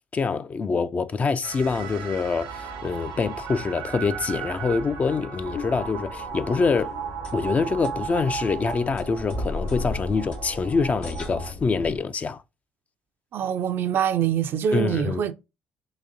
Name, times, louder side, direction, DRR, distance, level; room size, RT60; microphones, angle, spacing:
voice 1, 0.1-6.9 7.3-12.4 14.7-15.2, left 4 dB, 35° left, 0.4 m, -25 dB
sound 1, 1.4-11.5, right 6 dB, 85° right, 0.8 m, -36 dB
sound 2, 5.4-12.0, left 2 dB, 55° left, 0.8 m, -37 dB
sound 3, 6.6-12.0, left 3 dB, 85° left, 2.2 m, -50 dB
voice 2, 13.3-15.3, right 9 dB, 55° right, 0.5 m, -24 dB
3.9 x 2.8 x 2.5 m
hypercardioid pair, 60°, 4 cm